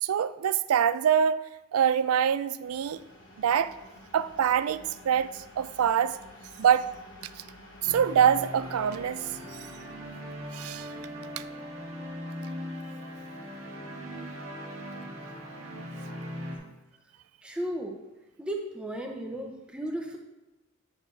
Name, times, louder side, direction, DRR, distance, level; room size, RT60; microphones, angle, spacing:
voice 1, 0.0-1.4 1.7-3.0 3.4-3.7 4.1-6.2 6.6-6.9 7.8-9.2 9.6-9.7 10.5-10.9, right 8 dB, 85° right, 0.4 m, -25 dB
sound 1, 2.6-14.2, left 1 dB, 55° left, 1.4 m, -52 dB
sound 2, 7.8-16.6, equal, 65° right, 1.5 m, -40 dB
voice 2, 17.4-18.0 18.4-20.2, right 1 dB, 5° right, 0.8 m, -34 dB
8.4 x 6.4 x 3.3 m
head